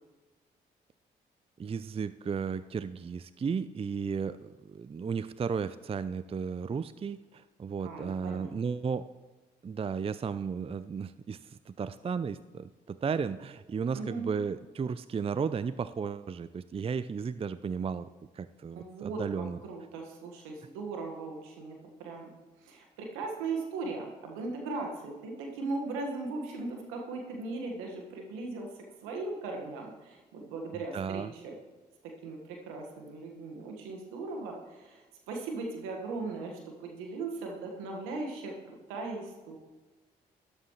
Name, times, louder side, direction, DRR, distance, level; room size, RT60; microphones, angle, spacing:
voice 1, 1.6-9.0 9.6-18.1 18.3-19.6 30.9-31.3, right 6 dB, 30° right, 14 dB, 0.4 m, -34 dB
voice 2, 7.8-8.5 13.9-14.3 18.7-22.3 22.6-28.7 29.0-31.6 32.0-39.6, right 3 dB, 85° right, 1 dB, 1.7 m, -38 dB
12.5 x 11.5 x 3.2 m, 1.2 s
hypercardioid pair, 40°, 21 cm